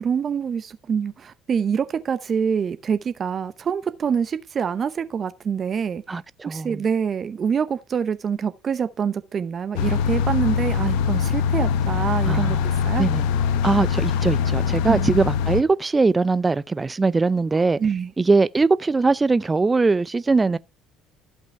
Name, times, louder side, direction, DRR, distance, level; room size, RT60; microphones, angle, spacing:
voice 1, 0.0-6.0 6.4-13.1 14.8-15.2 17.8-18.1, right 7 dB, 40° right, 0.8 m, -25 dB
voice 2, 6.1-6.8 12.3-12.6 13.0-13.2 13.6-17.8 18.2-20.6, right 3 dB, 25° right, 0.4 m, -21 dB
sound 1, 9.8-15.6, left 7 dB, 75° left, 0.7 m, -22 dB
14.5 x 5.4 x 4.6 m
hypercardioid pair, 65°, 0 cm